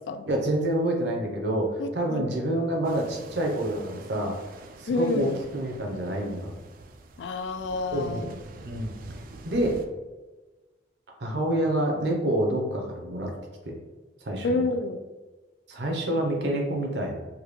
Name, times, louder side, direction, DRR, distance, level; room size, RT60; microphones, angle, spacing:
voice 1, 0.3-4.4 4.8-6.5 7.9-8.3 8.6-9.0 9.4-9.8 11.2-13.3 13.6-13.8 14.2-14.7 15.7-17.2, right 1 dB, 70° right, 1 dB, 0.7 m, -27 dB
voice 2, 1.8-2.3 4.9-5.4 7.2-8.4 14.4-15.0, left 2 dB, 75° left, 9 dB, 0.3 m, -29 dB
sound 1, 2.8-9.9, right 2 dB, 50° right, 0.3 m, -46 dB
3.6 x 2.2 x 3.1 m, 1.2 s
head